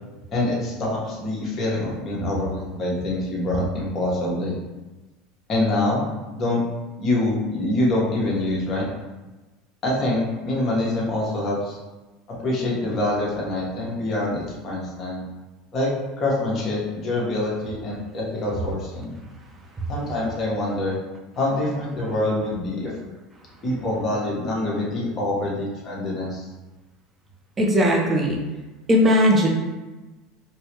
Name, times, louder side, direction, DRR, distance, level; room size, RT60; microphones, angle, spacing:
voice 1, 0.3-4.5 5.5-6.0 6.3-6.6 7.0-8.8 9.8-11.8 12.3-15.2 15.7-15.9 16.2-19.1 19.9-21.0 21.4-22.9 23.6-26.5, left 1 dB, 35° left, -4 dB, 1.1 m, -25 dB
voice 2, 27.6-28.4 28.9-29.5, equal, 20° right, 0 dB, 0.7 m, -18 dB
4.4 x 2.1 x 2.9 m, 1.2 s
supercardioid pair, 115°, 0 cm